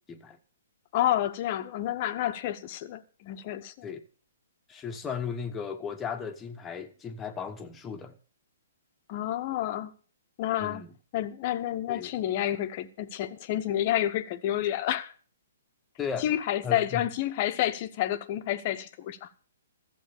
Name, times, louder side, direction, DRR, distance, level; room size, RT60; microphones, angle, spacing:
voice 1, 0.9-3.9 9.1-9.9 10.4-10.8 11.1-15.1 16.2-19.3, left 12 dB, 35° left, 1.0 m, -29 dB
voice 2, 4.7-8.2 10.6-10.9 11.9-12.1 16.0-16.3 16.6-17.0, left 6 dB, 15° left, 1.1 m, -36 dB
14.0 x 7.7 x 6.7 m
figure-of-eight pair, 120°, 0 cm